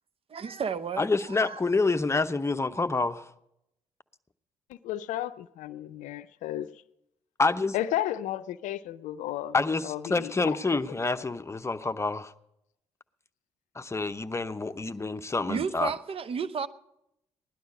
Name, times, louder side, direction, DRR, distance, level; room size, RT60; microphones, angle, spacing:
voice 1, 0.3-1.6 15.5-16.7, right 6 dB, 45° right, 0.8 m, -32 dB
voice 2, 1.0-3.3 7.4-7.8 9.5-12.3 13.8-15.9, left 3 dB, 20° left, 0.8 m, -27 dB
voice 3, 4.8-6.7 7.7-9.5 9.8-10.6, left 12 dB, 70° left, 0.5 m, -33 dB
17.0 x 11.5 x 5.3 m
hypercardioid pair, 45°, 14 cm